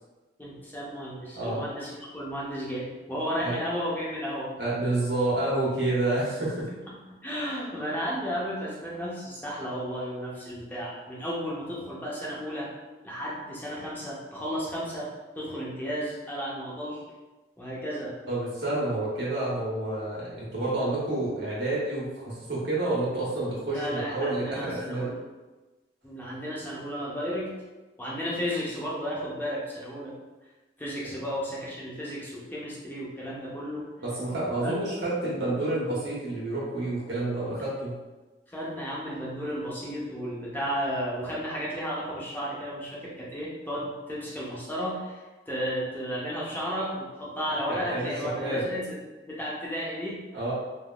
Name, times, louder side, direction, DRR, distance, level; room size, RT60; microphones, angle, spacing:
voice 1, 0.4-4.6 7.1-12.7 13.0-17.0 17.6-18.2 23.7-25.2 26.0-27.5 28.0-30.1 30.8-33.9 34.6-34.8 38.5-50.2, equal, 10° left, -6 dB, 0.6 m, -33 dB
voice 2, 4.6-6.6 18.3-25.1 34.0-37.9 47.7-48.1 48.4-48.6 50.3-50.5, right 2 dB, 90° right, -6 dB, 1.1 m, -29 dB
3.4 x 2.2 x 2.3 m, 1.1 s
head